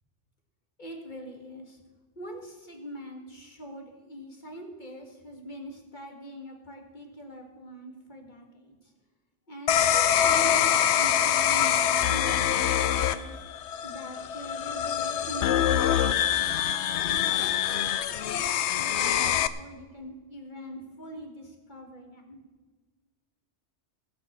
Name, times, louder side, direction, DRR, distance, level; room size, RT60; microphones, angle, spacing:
voice 1, 0.8-1.8 2.2-8.8 9.5-13.4 13.8-16.5 17.0-22.4, equal, 40° left, 2 dB, 2.2 m, -42 dB
sound 1, 9.7-19.5, left 10 dB, 75° left, 0.9 m, -25 dB
17.5 x 6.3 x 7.4 m, 1.4 s
omnidirectional pair, 1.2 m